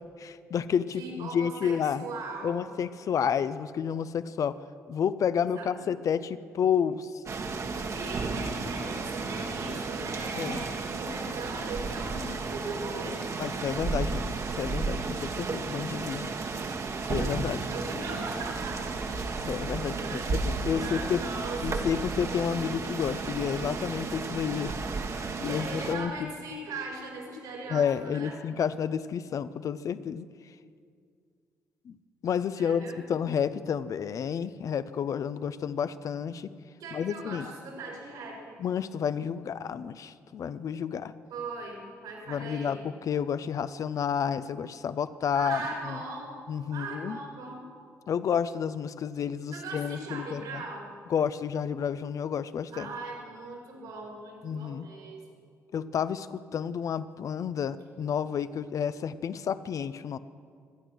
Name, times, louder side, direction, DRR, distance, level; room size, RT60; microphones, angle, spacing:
voice 1, 0.2-2.1 2.4-4.6 4.9-7.2 10.4-10.6 13.4-14.3 14.5-16.3 17.0-17.7 19.4-21.2 21.6-24.7 25.1-26.3 27.7-30.3 31.8-32.0 32.2-36.5 36.9-37.5 38.6-41.1 42.3-46.0 46.5-47.2 48.1-50.6 51.1-52.9 54.4-54.9 55.7-60.2, left 7 dB, 55° left, 14 dB, 0.7 m, -30 dB
voice 2, 1.0-2.7 5.4-5.9 7.9-13.2 17.7-18.8 20.0-20.3 20.8-21.9 25.5-28.4 32.6-33.0 36.8-38.6 41.3-42.8 45.3-46.4 46.7-47.6 49.5-50.9 52.7-55.2, right 3 dB, 80° right, -1 dB, 5.2 m, -39 dB
sound 1, 7.3-26.0, right 4 dB, 50° right, 1.6 m, -33 dB
24.5 x 9.2 x 6.3 m, 2.2 s
hypercardioid pair, 55°, 7 cm